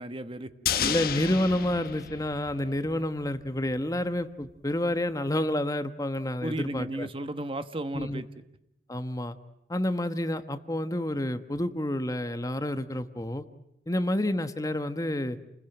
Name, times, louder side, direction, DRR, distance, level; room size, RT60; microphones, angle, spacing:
voice 1, 0.0-0.5 6.4-8.3, right 1 dB, 30° right, 10 dB, 1.1 m, -34 dB
sound 1, 0.7-3.0 3.3-3.4, left 8 dB, 55° left, 1.4 m, -31 dB
voice 2, 0.7-7.1 7.9-8.2 8.9-9.4 9.7-13.5 13.9-15.4, left 1 dB, 20° left, 10 dB, 1.2 m, -29 dB
30.0 x 21.0 x 9.1 m, 0.86 s
head